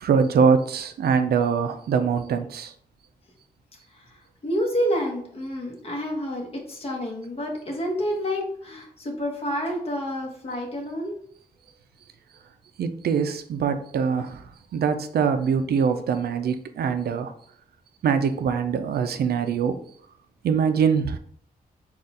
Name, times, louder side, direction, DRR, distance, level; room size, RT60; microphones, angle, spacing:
voice 1, 0.0-2.7 12.8-17.3 18.0-19.8 20.4-21.2, right 6 dB, 80° right, 9 dB, 0.4 m, -23 dB
voice 2, 3.9-11.2, equal, 40° left, 0 dB, 1.1 m, -29 dB
4.1 x 2.4 x 3.7 m, 0.63 s
wide cardioid pair, 110°, 16 cm